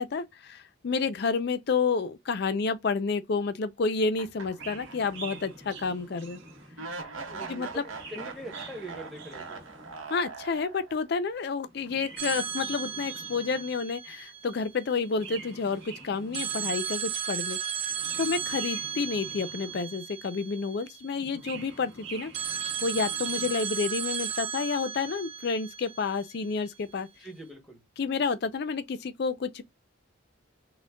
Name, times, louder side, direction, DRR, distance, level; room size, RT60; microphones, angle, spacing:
voice 1, 0.0-6.4 7.5-7.8 10.1-17.6 18.2-22.3 22.8-27.1 28.0-29.6, left 4 dB, 50° left, 0.4 m, -30 dB
sound 1, 4.1-5.4 5.8-5.9 6.8-11.1, right 4 dB, 80° right, 0.9 m, -41 dB
Chirp tweet, 4.5-7.0 7.7-10.1 11.7-13.8 15.1-17.0 17.8-20.1 21.1-23.7, right 4 dB, 60° right, 1.2 m, -46 dB
voice 2, 7.2-9.6 27.2-27.8, right 1 dB, ahead, 0.8 m, -43 dB
sound 2, 12.2-15.1 16.3-21.3 22.3-26.5, right 8 dB, 30° right, 0.4 m, -35 dB
6.1 x 2.1 x 2.2 m
head